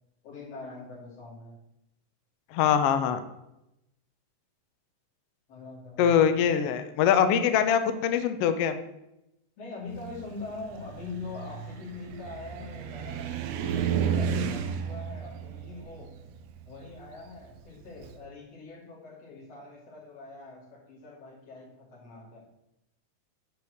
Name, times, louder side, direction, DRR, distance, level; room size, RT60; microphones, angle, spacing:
voice 1, 0.2-1.6 5.5-6.4 9.6-13.3 13.6-16.1 16.7-22.4, left 3 dB, 55° left, -4 dB, 3.7 m, -43 dB
voice 2, 2.5-3.2 6.0-8.8, left 8 dB, 85° left, 9 dB, 1.3 m, -23 dB
Car, 9.9-18.2, right 7 dB, 70° right, 1.7 m, -33 dB
10.0 x 4.7 x 6.4 m, 0.87 s
omnidirectional pair, 3.6 m